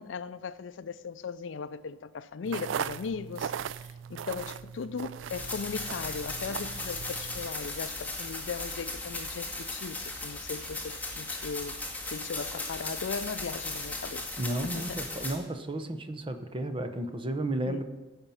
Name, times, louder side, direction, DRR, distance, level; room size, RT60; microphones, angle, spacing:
voice 1, 0.0-11.8 12.1-15.0 17.6-17.8, left 5 dB, 75° left, 0.4 m, -38 dB
sound 1, 2.4-7.5, right 8 dB, 75° right, 0.3 m, -38 dB
sound 2, 5.3-15.3, left 2 dB, 10° left, 1.8 m, -37 dB
voice 2, 14.4-17.8, right 1 dB, 25° right, 0.8 m, -33 dB
16.0 x 6.0 x 5.6 m
head